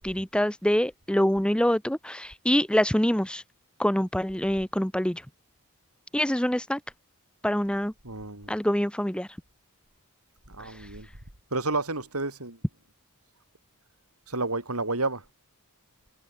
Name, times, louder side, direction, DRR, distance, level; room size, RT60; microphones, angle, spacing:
voice 1, 0.0-3.4 3.8-5.2 6.1-6.8 7.4-7.9 8.5-9.3, equal, 5° left, 1.0 m, -25 dB
voice 2, 8.0-8.5 10.5-11.1 11.5-12.6 14.3-15.2, right 2 dB, 80° right, 6.4 m, -30 dB
head